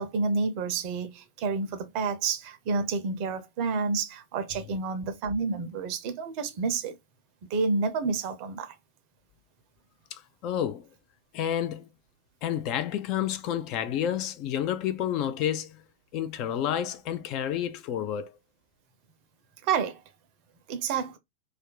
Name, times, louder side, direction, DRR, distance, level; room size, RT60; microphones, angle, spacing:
voice 1, 0.0-6.9 7.5-8.7 19.6-20.0 20.7-21.2, right 4 dB, 45° right, 0.6 m, -29 dB
voice 2, 10.1-10.9 11.3-11.9 12.4-15.8 16.1-18.3, left 10 dB, 40° left, 0.4 m, -30 dB
2.5 x 2.1 x 3.8 m
figure-of-eight pair, 90°, 0 cm